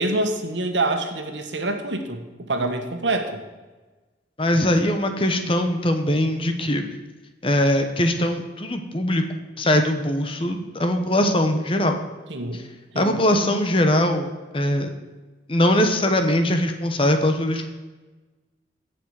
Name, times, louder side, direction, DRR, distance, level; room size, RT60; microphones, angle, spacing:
voice 1, 0.0-3.4 12.3-12.6 12.9-13.1, right 2 dB, 85° right, 5 dB, 1.5 m, -26 dB
voice 2, 4.4-6.9 7.4-9.2 9.6-12.0 13.0-14.9 15.5-17.7, left 1 dB, 30° left, 6 dB, 1.1 m, -21 dB
17.0 x 6.1 x 4.9 m, 1.2 s
head